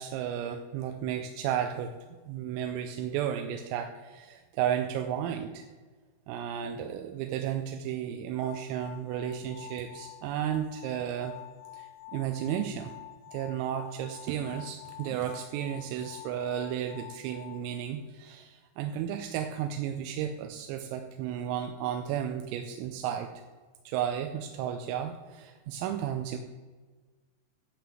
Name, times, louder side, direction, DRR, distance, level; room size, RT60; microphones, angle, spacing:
voice 1, 0.0-2.0 2.3-5.7 6.3-11.3 11.7-12.9 13.3-23.3 23.9-26.4, right 9 dB, 90° right, 5 dB, 3.4 m, -33 dB
sound 1, 8.4-17.7, left 15 dB, 85° left, 3.2 m, -48 dB
12.0 x 5.1 x 7.6 m, 1.3 s
omnidirectional pair, 5.8 m